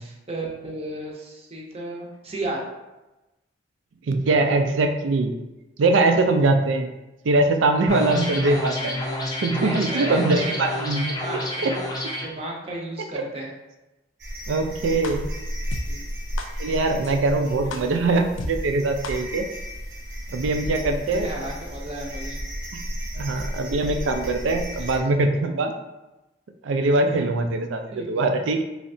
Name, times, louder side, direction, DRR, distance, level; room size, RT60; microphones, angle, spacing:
voice 1, 0.0-2.6 9.6-10.6 11.1-11.7 12.2-13.5 15.9-16.0 17.6-17.9 21.1-22.4 24.8-25.0 27.0-27.2 27.9-28.1, right 2 dB, 30° right, -1 dB, 0.6 m, -34 dB
voice 2, 4.1-5.3 5.8-6.9 7.2-9.0 9.4-11.2 11.6-11.7 13.1-13.2 14.5-15.3 16.6-19.5 20.3-21.3 22.7-22.8 23.2-25.7 26.6-28.6, right 2 dB, 75° right, 5 dB, 0.4 m, -22 dB
sound 1, 7.9-12.3, left 1 dB, 20° left, 0.4 m, -29 dB
sound 2, 14.2-25.0, equal, 60° right, 0.8 m, -33 dB
sound 3, 15.0-15.1 15.7-15.8 16.4-16.5 17.0-17.1 17.7-17.8 18.4-18.5 19.0-19.1, left 3 dB, 90° left, 0.4 m, -32 dB
3.1 x 2.7 x 2.6 m, 1.0 s
head